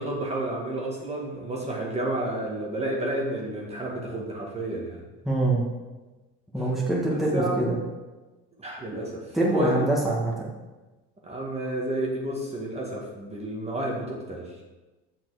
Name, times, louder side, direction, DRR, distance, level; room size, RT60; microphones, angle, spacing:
voice 1, 0.0-5.0 7.1-7.7 8.6-10.0 11.2-14.6, right 1 dB, 20° right, -3 dB, 1.9 m, -31 dB
voice 2, 5.3-5.6 6.5-7.8 9.3-10.5, right 1 dB, ahead, -4 dB, 1.9 m, -24 dB
7.4 x 5.7 x 5.0 m, 1.2 s
supercardioid pair, 100°, 32 cm